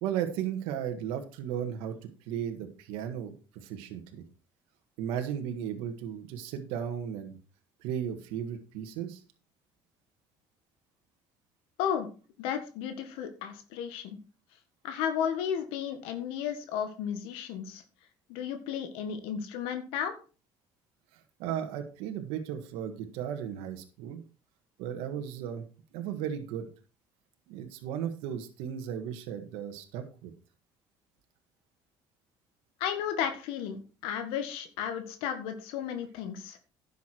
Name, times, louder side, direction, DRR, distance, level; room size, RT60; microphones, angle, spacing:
voice 1, 0.0-4.2 5.0-7.4 7.8-9.2 21.1-24.2 24.8-25.6 25.9-26.7 27.5-30.3, right 9 dB, 90° right, 6 dB, 1.6 m, -35 dB
voice 2, 11.8-12.1 12.4-14.2 14.8-17.8 18.3-20.1 32.8-36.6, left 8 dB, 85° left, 8 dB, 1.7 m, -33 dB
11.0 x 7.1 x 4.5 m, 0.34 s
cardioid pair, 115°, 9 cm